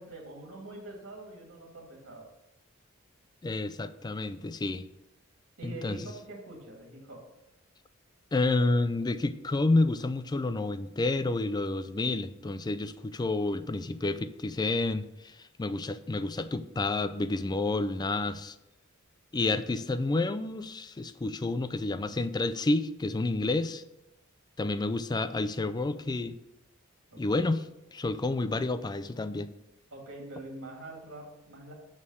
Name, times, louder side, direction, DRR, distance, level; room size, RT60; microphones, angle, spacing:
voice 1, 0.0-2.3 5.6-7.3 27.1-27.2 29.9-31.7, right 2 dB, 75° right, 0 dB, 2.2 m, -44 dB
voice 2, 3.4-4.9 5.6-6.0 8.3-18.6 19.3-23.8 24.6-26.4 27.2-27.6 27.9-29.5, left 2 dB, 20° left, 12 dB, 0.4 m, -29 dB
6.4 x 5.5 x 6.4 m, 0.90 s
head